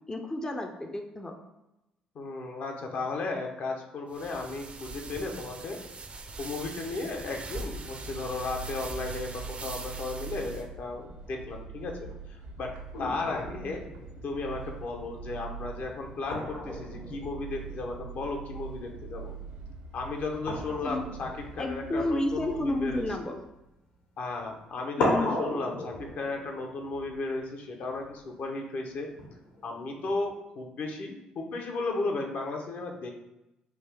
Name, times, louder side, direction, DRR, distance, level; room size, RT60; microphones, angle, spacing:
voice 1, 0.1-1.3 20.8-21.1 21.6-23.4 25.0-25.4, left 1 dB, 20° left, 3 dB, 0.4 m, -31 dB
voice 2, 2.1-5.8 6.4-12.0 12.3-12.7 13.0-13.8 14.2-19.3 19.9-23.1 24.2-29.1 29.6-33.1, left 3 dB, 60° left, 1 dB, 0.6 m, -35 dB
sound 1, 4.1-10.6, right 3 dB, 40° right, 0.5 m, -41 dB
sound 2, 7.7-23.2, right 5 dB, 85° right, 0.6 m, -43 dB
sound 3, 12.9-18.8 19.1-19.5 20.4-23.7 24.5-24.6 25.0-28.2 29.2-30.2, left 1 dB, 75° left, 1.2 m, -37 dB
3.4 x 2.4 x 3.4 m, 0.93 s
supercardioid pair, 65°, 3 cm